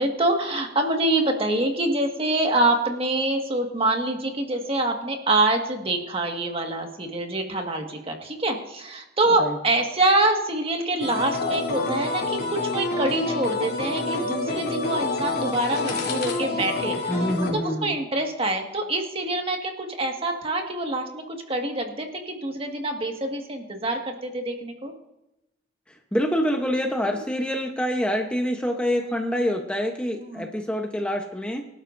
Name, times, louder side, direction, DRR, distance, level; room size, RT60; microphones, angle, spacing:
voice 1, 0.0-17.1 17.4-24.9 27.0-27.2 30.2-30.5, right 2 dB, 35° right, 3 dB, 1.8 m, -25 dB
sound 1, 11.0-17.5, left 3 dB, 60° left, 2.9 m, -28 dB
voice 2, 17.1-18.0 25.9-31.7, equal, 5° left, 2 dB, 0.9 m, -26 dB
24.0 x 12.0 x 2.6 m, 0.92 s
head